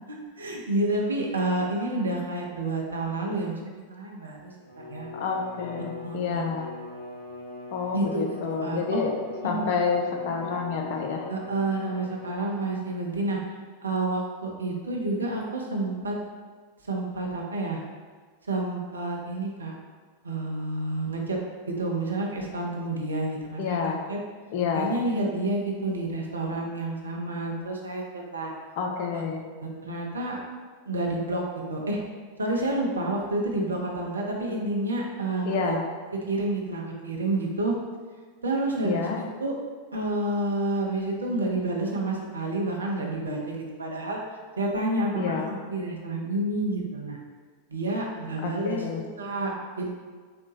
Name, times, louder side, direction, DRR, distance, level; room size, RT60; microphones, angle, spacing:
voice 1, 0.4-3.6 3.9-5.1 6.0-6.4 7.9-9.0 9.4-9.7 11.3-13.4 13.8-16.2 16.8-17.8 18.4-19.7 20.2-21.4 21.7-24.2 24.7-28.5 29.1-29.2 29.6-30.4 30.9-31.4 31.7-32.0 32.4-35.7 36.3-37.8 38.4-39.6 39.9-44.2 44.6-47.2 47.7-49.9, right 2 dB, 75° right, -1 dB, 0.6 m, -29 dB
Bowed string instrument, 4.6-12.9, left 2 dB, 70° left, 0.8 m, -41 dB
voice 2, 5.1-6.7 7.7-9.1 9.4-11.3 23.6-24.0 24.5-24.9 28.8-29.4 35.5-35.8 38.8-39.2 45.1-45.5 48.4-49.0, left 5 dB, 50° left, 1 dB, 0.5 m, -29 dB
3.8 x 2.1 x 3.0 m, 1.5 s
figure-of-eight pair, 90°, 0 cm